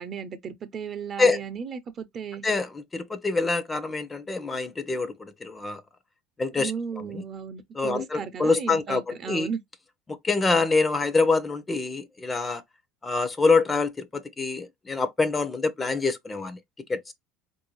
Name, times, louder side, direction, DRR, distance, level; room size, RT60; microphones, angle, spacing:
voice 1, 0.0-2.4 6.6-9.6, right 7 dB, 45° right, 0.8 m, -35 dB
voice 2, 2.4-5.8 6.4-7.2 7.7-9.5 10.1-12.6 13.0-16.6 16.9-17.0, left 3 dB, 20° left, 0.7 m, -25 dB
4.3 x 2.7 x 3.1 m
hypercardioid pair, 80°, 0 cm